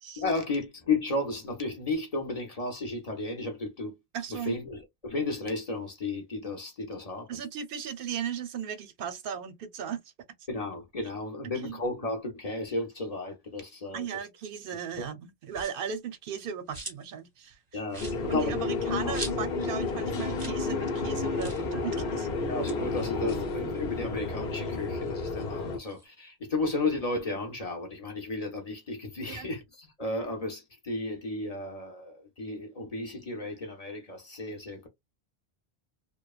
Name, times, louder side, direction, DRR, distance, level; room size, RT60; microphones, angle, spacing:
voice 1, 0.2-3.9 4.3-7.4 10.5-14.1 15.0-15.1 17.7-18.6 18.9-19.1 22.5-34.9, left 2 dB, 40° left, 0.7 m, -33 dB
voice 2, 4.1-4.6 7.3-10.0 11.6-11.8 13.9-17.8 18.3-22.3 29.3-29.5, right 7 dB, 65° right, 0.7 m, -36 dB
sound 1, 15.5-15.9 16.3-17.2 17.5-17.6 17.9-19.7 20.0-20.1 20.3-20.6 20.9-21.0 21.4-21.7 22.4-24.2 24.6-26.1, right 2 dB, 25° right, 0.7 m, -43 dB
sound 2, 18.0-25.8, left 3 dB, 80° left, 1.0 m, -31 dB
3.0 x 2.0 x 2.3 m
omnidirectional pair, 1.1 m